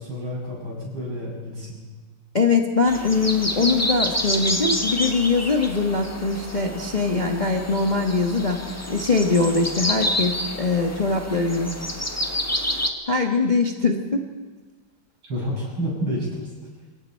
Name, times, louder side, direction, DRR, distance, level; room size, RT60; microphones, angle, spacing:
voice 1, 0.0-1.8 15.2-16.5, equal, 70° right, -4 dB, 8.3 m, -29 dB
voice 2, 2.3-8.6 8.9-11.7 13.1-14.2, left 3 dB, 25° left, 2 dB, 1.2 m, -22 dB
sound 1, 2.9-12.9, left 1 dB, 10° left, 1.1 m, -28 dB
26.5 x 22.5 x 4.5 m, 1.4 s
omnidirectional pair, 2.4 m